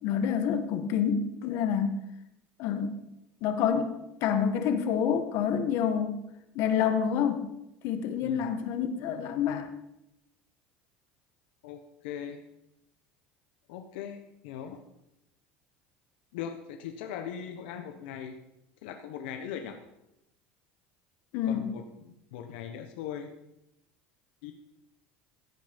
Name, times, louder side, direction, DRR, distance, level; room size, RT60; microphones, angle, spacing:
voice 1, 0.0-2.0 2.6-2.9 3.4-3.9 4.2-6.1 6.5-7.5 7.8-9.7 21.3-21.7, left 8 dB, 60° left, 8 dB, 1.6 m, -27 dB
voice 2, 11.6-12.4 13.7-14.8 16.3-18.4 18.8-19.8 21.4-23.3 24.4-24.5, left 8 dB, 85° left, 5 dB, 1.3 m, -40 dB
16.0 x 9.3 x 5.4 m, 0.86 s
cardioid pair, 135°, 5 cm